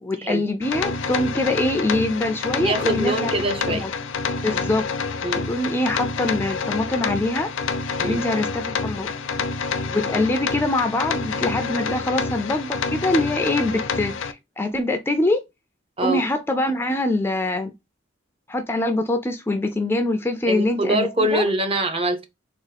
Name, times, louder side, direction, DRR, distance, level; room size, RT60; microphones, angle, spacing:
voice 1, 0.0-3.3 3.7-3.9 4.4-4.9 5.5-7.5 8.0-9.1 9.9-15.4 16.0-17.7 18.5-21.4, left 2 dB, 10° left, 0.3 m, -24 dB
sound 1, 0.6-14.3, left 4 dB, 85° left, 0.5 m, -27 dB
voice 2, 2.6-3.9 5.2-5.5 8.0-8.3 16.0-16.2 20.5-22.2, right 1 dB, 30° right, 0.6 m, -23 dB
3.5 x 2.4 x 3.3 m
head